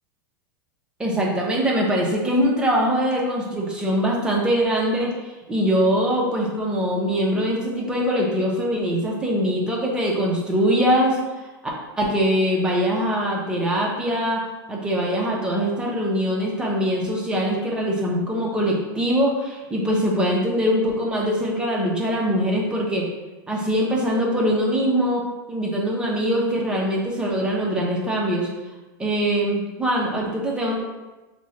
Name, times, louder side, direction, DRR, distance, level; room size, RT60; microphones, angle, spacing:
voice 1, 1.0-11.2 12.0-14.4 14.7-23.0 23.5-25.2 25.5-28.5 29.0-30.7, equal, 10° right, -3 dB, 0.7 m, -22 dB
3.1 x 2.4 x 4.0 m, 1.1 s
supercardioid pair, 140°, 11 cm